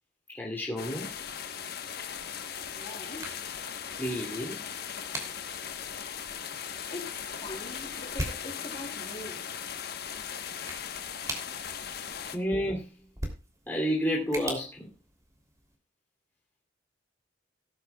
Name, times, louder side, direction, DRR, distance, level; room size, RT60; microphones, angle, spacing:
voice 1, 0.3-1.1 4.0-4.6 12.3-12.9 13.7-14.9, equal, 10° left, 3.0 m, -30 dB
sound 1, 0.8-12.4, left 8 dB, 55° left, 1.2 m, -38 dB
voice 2, 2.1-3.6 6.5-9.5 10.2-11.7, left 2 dB, 30° left, 3.6 m, -45 dB
sound 2, 2.1-15.8, right 1 dB, 15° right, 3.1 m, -44 dB
18.0 x 9.9 x 2.4 m
head